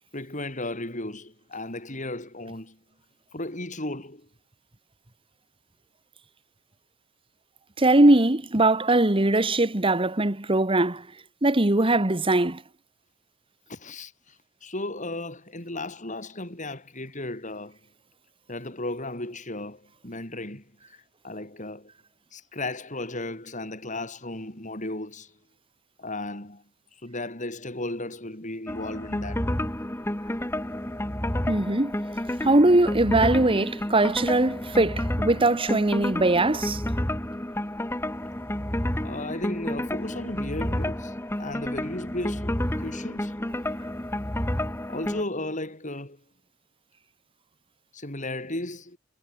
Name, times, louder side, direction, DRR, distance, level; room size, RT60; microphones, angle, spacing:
voice 1, 0.1-2.8 3.3-4.3 13.7-17.8 18.5-21.9 22.3-25.4 26.0-26.6 26.9-29.5 39.0-43.4 44.9-46.2 47.9-49.0, left 2 dB, 40° left, 7.9 m, -35 dB
voice 2, 7.8-11.1 11.4-12.6 31.5-32.0 32.4-36.8, right 2 dB, 25° right, 1.5 m, -21 dB
sound 1, 28.7-45.2, left 1 dB, 15° left, 1.6 m, -30 dB
head